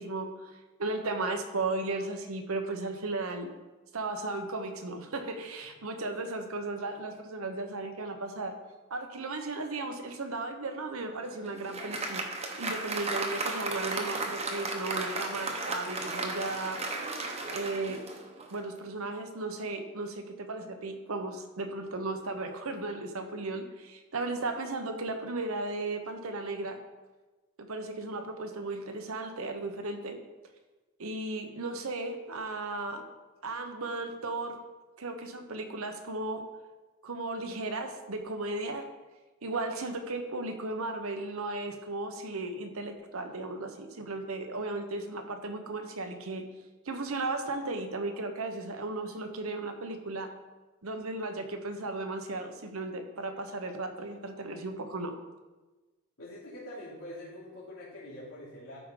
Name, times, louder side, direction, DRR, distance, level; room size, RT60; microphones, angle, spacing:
voice 1, 0.0-3.5 3.9-8.5 8.9-12.3 12.6-16.8 17.5-18.0 18.5-26.8 27.6-30.2 31.0-33.0 33.4-34.6 35.0-36.4 37.0-38.9 39.4-46.4 46.8-50.3 50.8-55.1, right 2 dB, 80° right, 6 dB, 0.9 m, -35 dB
Applause, 11.1-18.7, right 3 dB, 30° right, 1.0 m, -35 dB
voice 2, 56.2-58.8, left 1 dB, 85° left, -10 dB, 2.8 m, -44 dB
13.0 x 5.0 x 3.8 m, 1.2 s
head